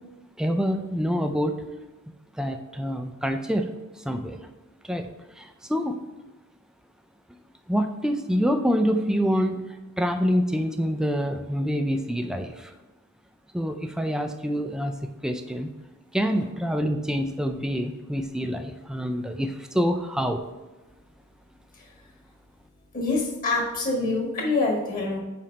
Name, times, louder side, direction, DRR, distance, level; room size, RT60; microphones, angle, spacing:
voice 1, 0.4-1.7 2.3-4.4 4.8-6.0 7.7-12.7 13.5-15.7 16.1-20.5, equal, 5° right, 6 dB, 0.3 m, -26 dB
voice 2, 22.9-25.2, left 3 dB, 40° left, -1 dB, 1.6 m, -25 dB
5.7 x 4.3 x 5.1 m, 1.1 s
head